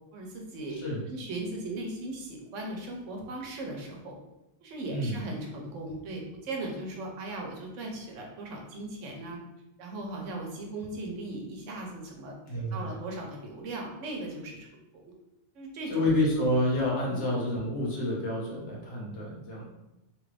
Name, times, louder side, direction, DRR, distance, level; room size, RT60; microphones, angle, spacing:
voice 1, 0.1-0.8 1.1-4.2 4.6-9.4 9.8-14.7 14.9-15.1 15.5-16.0 17.1-17.4, right 2 dB, 85° right, 0 dB, 1.1 m, -38 dB
voice 2, 12.5-12.9 15.9-19.6, left 1 dB, 70° left, -4 dB, 1.3 m, -29 dB
2.9 x 2.5 x 3.2 m, 0.92 s
omnidirectional pair, 1.2 m